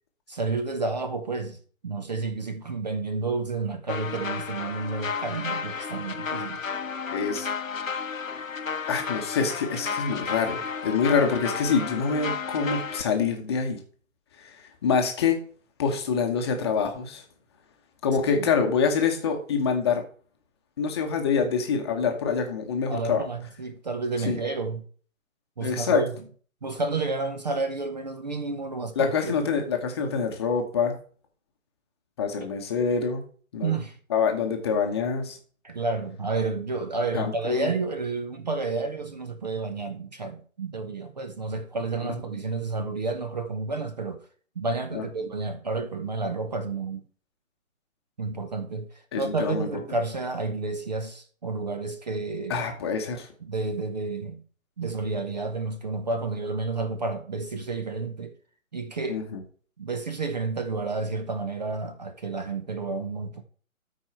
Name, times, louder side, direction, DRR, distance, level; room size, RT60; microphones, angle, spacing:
voice 1, 0.3-6.6 18.4-18.5 22.9-24.8 25.6-26.1 26.6-29.7 33.6-34.0 35.6-44.2 44.6-47.0 48.2-52.6 53.4-54.4 54.8-58.3 58.7-59.2 59.8-63.4, right 3 dB, 30° right, 0.8 m, -30 dB
triphop base, 3.9-13.0, left 5 dB, 70° left, 0.9 m, -32 dB
voice 2, 7.1-7.5 8.9-13.8 14.4-14.6 14.8-15.4 15.8-17.2 18.0-20.0 20.8-23.2 24.3-24.4 25.6-26.0 29.0-31.0 32.2-33.2 33.5-33.7 34.1-35.4 37.1-37.7 44.9-45.0 49.1-49.7 52.5-53.3 59.1-59.4, left 5 dB, 20° left, 1.1 m, -25 dB
12.5 x 4.8 x 4.4 m
figure-of-eight pair, 145°, 41 cm